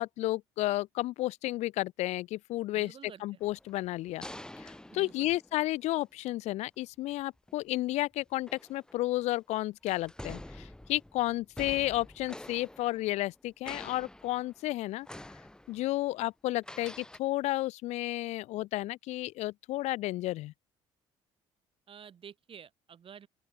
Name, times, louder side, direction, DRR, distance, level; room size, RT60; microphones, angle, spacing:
voice 1, 0.0-4.2 4.6-15.1 15.7-20.5, left 17 dB, 65° left, 0.4 m, -32 dB
voice 2, 2.7-3.2 4.9-5.3 21.9-23.3, right 8 dB, 45° right, 3.1 m, -50 dB
sound 1, 3.4-5.9 7.4-7.6 8.3-9.3 9.9-13.4 13.6-14.7 15.0-16.0 16.6-17.2, left 1 dB, 5° left, 0.9 m, -47 dB
open air
supercardioid pair, 65°, 12 cm